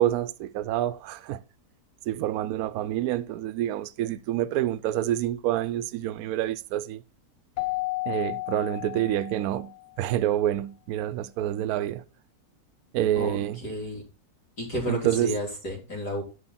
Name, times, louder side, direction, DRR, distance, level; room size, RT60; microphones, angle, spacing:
voice 1, 0.0-1.4 2.1-7.0 8.1-9.7 10.0-12.0 12.9-13.6 14.9-15.4, right 12 dB, 70° right, 1.0 m, -27 dB
Keyboard (musical), 7.6-9.8, left 21 dB, 65° left, 0.8 m, -32 dB
voice 2, 13.1-14.0 14.6-16.2, equal, 80° left, 4.2 m, -32 dB
11.0 x 5.4 x 4.2 m
omnidirectional pair, 1.7 m